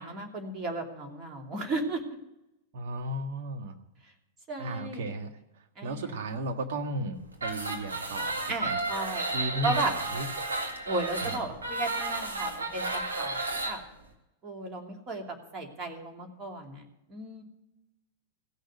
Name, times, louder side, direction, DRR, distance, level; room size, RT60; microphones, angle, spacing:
voice 1, 0.0-2.0 4.5-5.0 5.8-6.0 8.5-9.3 9.6-9.9 10.9-13.4 13.6-13.8 14.4-15.2 15.5-16.8 17.1-17.4, right 2 dB, 30° right, 2 dB, 2.8 m, -34 dB
voice 2, 2.7-3.8 4.6-8.8 9.2-10.2 11.2-11.5, right 1 dB, 55° right, 4 dB, 1.7 m, -35 dB
sound 1, 7.3-13.7, right 2 dB, 80° right, 2.0 m, -32 dB
16.0 x 6.6 x 9.3 m, 0.89 s
figure-of-eight pair, 95°, 0 cm